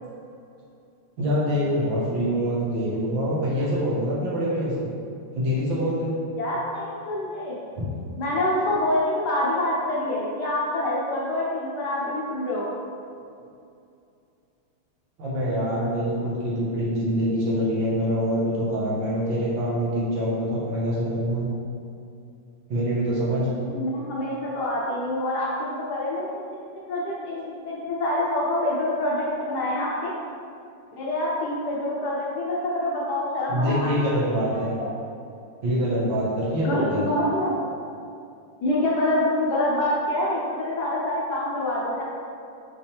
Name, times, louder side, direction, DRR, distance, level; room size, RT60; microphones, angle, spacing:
voice 1, 1.2-4.9 5.3-6.1 7.8-7.9 15.2-21.5 22.7-23.5 33.5-34.7 35.6-37.0, equal, 65° right, -7 dB, 2.1 m, -25 dB
voice 2, 6.3-7.6 8.2-12.7 23.6-26.3 26.9-30.1 30.9-33.9 34.5-34.9 36.6-37.5 38.6-42.0, left 1 dB, 65° left, -5 dB, 1.1 m, -26 dB
5.6 x 5.1 x 3.4 m, 2.5 s
omnidirectional pair, 2.3 m